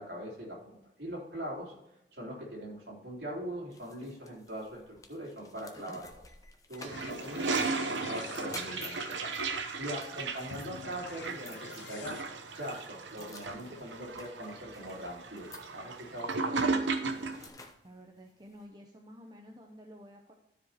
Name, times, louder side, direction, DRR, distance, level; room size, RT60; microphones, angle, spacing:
voice 1, 0.0-1.7 2.1-6.2 6.7-6.9 7.2-12.2 12.5-16.7, equal, 65° right, -3 dB, 3.5 m, -42 dB
sound 1, 3.7-18.6, left 3 dB, 20° left, 0.8 m, -54 dB
Toilet flush, 6.8-17.5, right 4 dB, 85° right, 0.9 m, -35 dB
sound 2, 6.9-9.8 10.5-12.2, left 6 dB, 80° left, 0.4 m, -47 dB
voice 2, 17.8-20.3, equal, 25° right, 1 dB, 0.8 m, -51 dB
12.5 x 4.9 x 4.3 m, 0.87 s
head